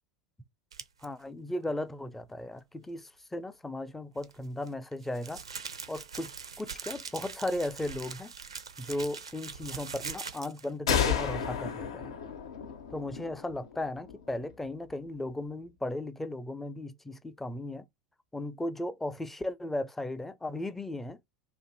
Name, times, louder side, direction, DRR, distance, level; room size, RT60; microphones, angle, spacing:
sound 1, 0.7-1.1 4.2-10.7, right 6 dB, 85° right, 0.5 m, -42 dB
voice 1, 1.0-5.4 5.9-6.3 6.6-8.3 8.8-12.2 12.9-17.9 18.3-21.2, left 1 dB, 10° left, 0.4 m, -36 dB
sound 2, 10.9-14.4, left 7 dB, 70° left, 0.7 m, -32 dB
2.5 x 2.5 x 3.9 m
figure-of-eight pair, 85°, 3 cm